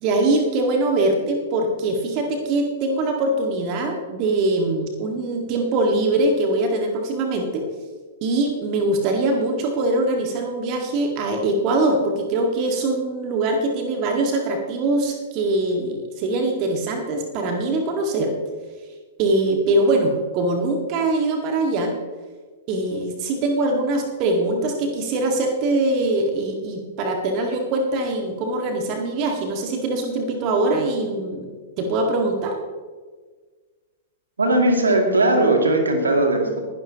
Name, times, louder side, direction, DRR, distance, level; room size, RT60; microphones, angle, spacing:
voice 1, 0.0-7.7 8.2-18.3 19.2-21.9 22.7-31.5 31.8-32.5, right 2 dB, 40° right, 3 dB, 1.7 m, -22 dB
voice 2, 34.4-36.6, right 2 dB, 75° right, 3 dB, 2.2 m, -18 dB
21.0 x 11.5 x 2.9 m, 1.4 s
figure-of-eight pair, 100°, 0 cm